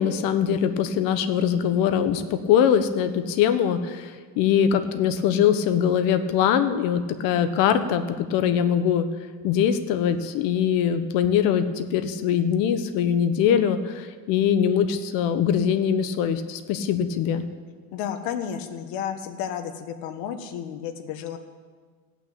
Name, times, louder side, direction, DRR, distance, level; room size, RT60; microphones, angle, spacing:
voice 1, 0.0-9.1 9.4-17.5, left 8 dB, 70° left, 9 dB, 1.1 m, -22 dB
voice 2, 17.9-21.4, left 8 dB, 85° left, 7 dB, 1.4 m, -32 dB
17.0 x 5.9 x 8.7 m, 1.5 s
cardioid pair, 175°, 35 cm